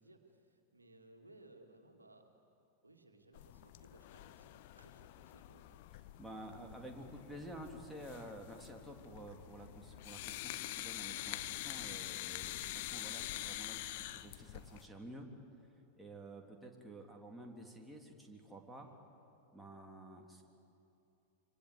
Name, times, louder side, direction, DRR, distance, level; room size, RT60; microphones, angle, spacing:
voice 1, 0.0-2.3 2.8-5.8 18.8-19.0, right 2 dB, 80° right, 4 dB, 2.3 m, -62 dB
sound 1, 3.3-14.9, left 15 dB, 50° left, 0.9 m, -46 dB
voice 2, 6.2-15.3 15.6-18.9 19.5-20.4, right 1 dB, 5° right, 0 dB, 3.4 m, -51 dB
26.0 x 25.5 x 8.2 m, 2.7 s
figure-of-eight pair, 90°, 0 cm